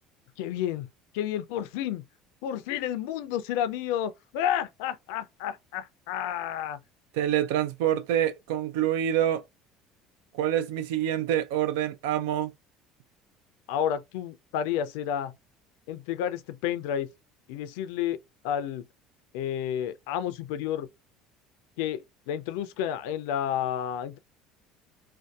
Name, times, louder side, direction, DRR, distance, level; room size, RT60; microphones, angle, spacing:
voice 1, 0.4-0.9 1.1-2.0 2.4-6.8 13.7-15.3 15.9-17.1 17.5-18.2 18.4-18.8 19.3-20.9 21.8-24.2, left 10 dB, 80° left, 0.3 m, -30 dB
voice 2, 7.1-9.4 10.3-12.5, right 11 dB, 80° right, 0.3 m, -26 dB
2.6 x 2.2 x 2.2 m
supercardioid pair, 85°, 0 cm